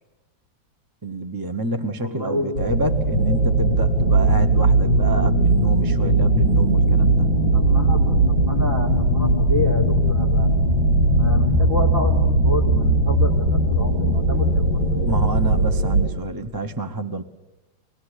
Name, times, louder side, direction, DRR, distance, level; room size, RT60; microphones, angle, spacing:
voice 1, 1.0-7.3 15.1-17.2, right 2 dB, 20° right, 9 dB, 0.6 m, -28 dB
voice 2, 2.0-2.6 7.5-8.1 8.4-10.8 11.1-12.2 12.4-15.1, left 1 dB, 40° right, -1 dB, 5.2 m, -30 dB
sound 1, 2.5-16.1, right 1 dB, 85° right, 5.2 m, -19 dB
24.0 x 20.0 x 9.9 m, 1.0 s
omnidirectional pair, 2.1 m